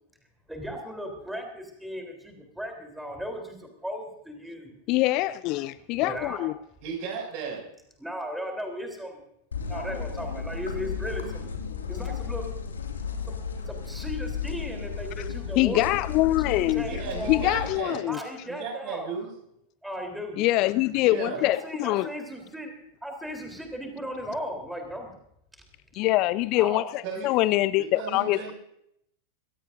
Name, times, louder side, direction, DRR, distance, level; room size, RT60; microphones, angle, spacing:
voice 1, 0.5-3.5 3.8-4.7 6.0-6.5 8.0-9.2 9.7-11.5 11.9-12.5 13.3-13.4 13.8-16.0 16.4-17.5 18.1-19.1 19.8-20.4 21.4-22.7 23.0-25.1 26.6-26.9, equal, 5° right, 3.7 m, -36 dB
voice 2, 4.9-6.5 15.6-16.8 17.3-18.2 20.4-22.1 26.0-28.5, left 17 dB, 40° left, 0.5 m, -24 dB
voice 3, 6.8-7.6 16.9-18.1 18.5-19.3 21.0-21.4 27.0-27.3 27.9-28.5, right 5 dB, 45° right, 6.6 m, -35 dB
sound 1, 9.5-17.7, left 6 dB, 70° left, 2.3 m, -34 dB
24.0 x 17.0 x 2.7 m
figure-of-eight pair, 90°, 0 cm